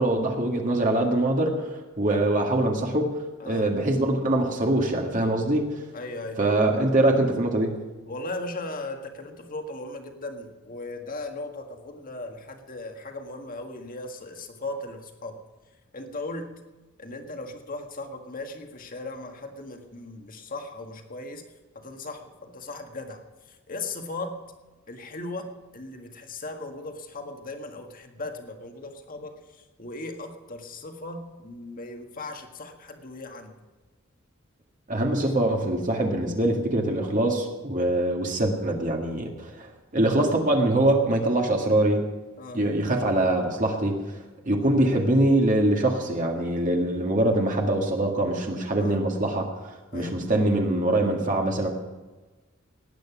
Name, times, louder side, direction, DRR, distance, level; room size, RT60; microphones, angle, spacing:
voice 1, 0.0-5.8 6.4-7.8 34.9-42.0 42.5-44.2 44.5-51.7, right 1 dB, 40° right, 1 dB, 1.8 m, -23 dB
voice 2, 5.9-6.4 8.1-15.4 15.9-16.5 17.0-21.4 21.8-24.4 24.9-33.6 42.4-42.6 48.8-49.0 49.9-50.2, left 2 dB, 45° left, 4 dB, 1.8 m, -37 dB
18.5 x 9.2 x 6.1 m, 1.2 s
head